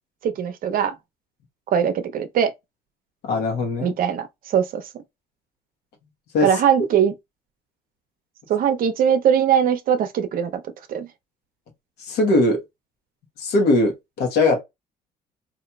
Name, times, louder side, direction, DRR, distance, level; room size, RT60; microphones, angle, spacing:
voice 1, 0.2-1.0 1.7-2.5 3.8-4.8 6.4-7.1 8.5-10.6 10.9-11.1, right 8 dB, 60° right, 0.6 m, -21 dB
voice 2, 3.2-3.9 6.3-6.5 12.1-12.6 13.4-14.6, left 2 dB, 75° left, 1.1 m, -20 dB
2.9 x 2.5 x 2.2 m
cardioid pair, 110°, 17 cm